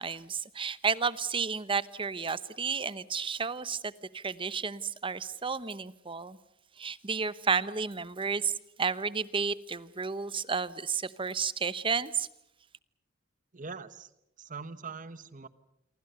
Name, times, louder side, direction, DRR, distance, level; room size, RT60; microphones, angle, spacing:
voice 1, 0.0-6.4 6.8-8.5 8.8-12.3, right 5 dB, 25° right, 0.9 m, -32 dB
voice 2, 13.5-14.1 14.4-15.5, right 4 dB, 45° right, 1.2 m, -42 dB
27.5 x 24.0 x 6.9 m
head